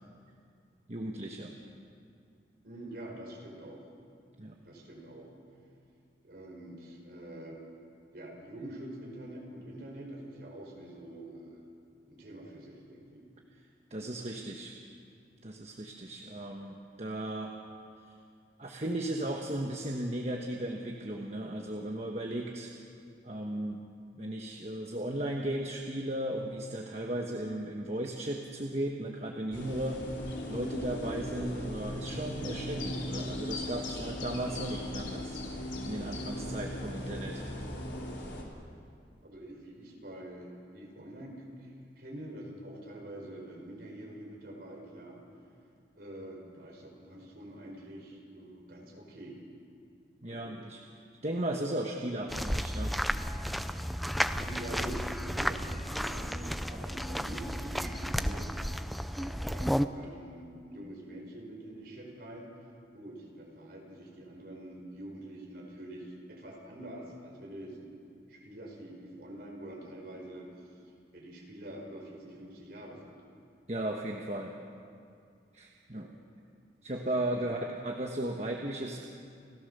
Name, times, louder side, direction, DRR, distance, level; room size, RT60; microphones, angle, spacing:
voice 1, 0.9-1.5 4.4-4.6 13.9-14.7 15.4-17.5 18.6-22.7 23.2-23.8 24.1-30.0 30.5-35.4 35.8-37.4 50.2-50.8 51.2-52.9 73.7-74.6 75.5-76.1 76.8-79.1, right 1 dB, 35° right, 1 dB, 1.2 m, -36 dB
voice 2, 2.6-3.8 4.6-5.3 6.2-7.6 8.1-11.6 12.1-13.3 39.2-45.2 45.9-49.4 50.3-50.6 54.4-58.5 59.1-62.5 62.9-68.0 68.3-70.5 71.1-73.2 75.9-76.0 77.0-77.5, right 1 dB, 55° right, 0 dB, 5.0 m, -45 dB
sound 1, 29.5-38.4, left 1 dB, 80° left, 3.4 m, -38 dB
sound 2, 52.3-59.8, equal, ahead, 0.4 m, -33 dB
29.5 x 15.5 x 6.8 m, 2.4 s
head